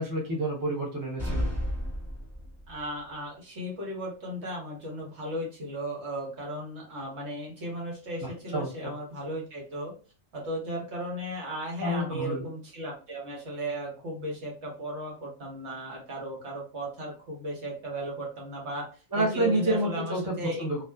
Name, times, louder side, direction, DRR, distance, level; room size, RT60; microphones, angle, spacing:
voice 1, 0.0-1.5 8.5-8.7 11.8-12.5 19.1-20.8, right 1 dB, 20° right, -3 dB, 0.6 m, -28 dB
sound 1, 1.2-2.9, equal, ahead, 1.2 m, -32 dB
voice 2, 2.7-9.9 10.3-18.9 19.1-20.6, right 1 dB, 60° right, -2 dB, 1.2 m, -36 dB
2.4 x 2.4 x 2.2 m, 0.36 s
omnidirectional pair, 1.4 m